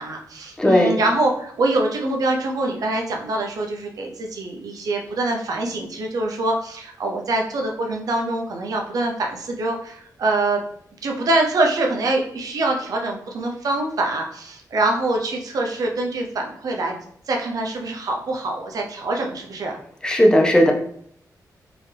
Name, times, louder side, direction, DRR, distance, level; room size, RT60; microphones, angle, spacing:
voice 1, 0.0-10.6 11.0-16.9 17.3-19.8, right 2 dB, 65° right, 1 dB, 0.6 m, -24 dB
voice 2, 0.6-1.0 20.0-20.7, equal, 10° left, 1 dB, 0.5 m, -15 dB
3.9 x 2.8 x 3.3 m, 0.65 s
wide cardioid pair, 160°, 7 cm